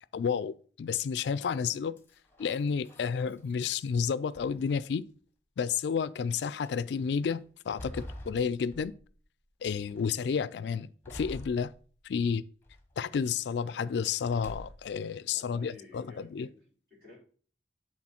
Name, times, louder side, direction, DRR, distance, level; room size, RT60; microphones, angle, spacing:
voice 1, 0.1-2.0 2.4-5.0 5.6-8.9 9.6-11.7 12.0-12.4 13.0-16.5, left 6 dB, 70° left, 0.3 m, -31 dB
sound 1, 2.0-3.8 4.3-5.1 5.8-5.9 6.4-6.7 7.3-9.2 9.6-10.2 11.0-12.2 12.6-13.2 14.2-15.0, left 1 dB, 15° left, 0.9 m, -47 dB
voice 2, 15.3-17.2, left 2 dB, 50° right, 3.9 m, -53 dB
8.6 x 3.7 x 4.3 m
head